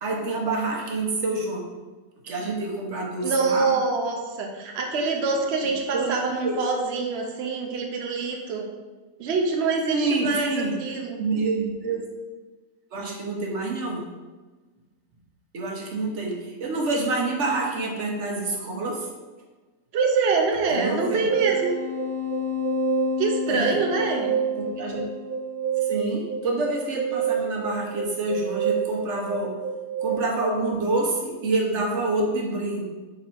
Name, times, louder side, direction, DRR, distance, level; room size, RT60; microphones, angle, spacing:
voice 1, 0.0-1.7 2.2-3.7 5.6-6.6 9.9-10.7 11.2-12.1 12.9-14.1 15.5-19.1 20.7-21.2 23.5-23.8 24.8-25.0 25.9-29.5 30.0-32.8, right 2 dB, 45° right, -1 dB, 1.1 m, -27 dB
voice 2, 3.2-8.7 9.2-10.5 10.8-11.2 19.9-21.8 23.2-24.4, right 4 dB, 80° right, 1 dB, 0.5 m, -25 dB
sound 1, 20.0-30.1, right 4 dB, ahead, 1.4 m, -28 dB
5.2 x 4.0 x 4.5 m, 1.3 s
omnidirectional pair, 2.0 m